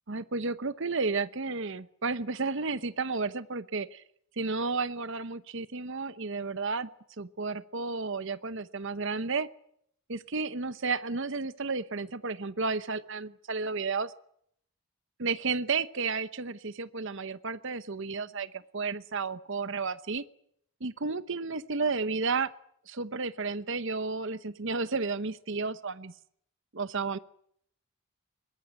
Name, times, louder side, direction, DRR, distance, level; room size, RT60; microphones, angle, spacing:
voice 1, 0.1-4.0 4.4-6.9 7.2-9.5 10.1-14.1 15.2-20.2 20.8-22.5 22.9-26.1 26.7-27.2, right 4 dB, 55° right, 14 dB, 0.9 m, -32 dB
23.5 x 20.5 x 9.4 m, 0.70 s
head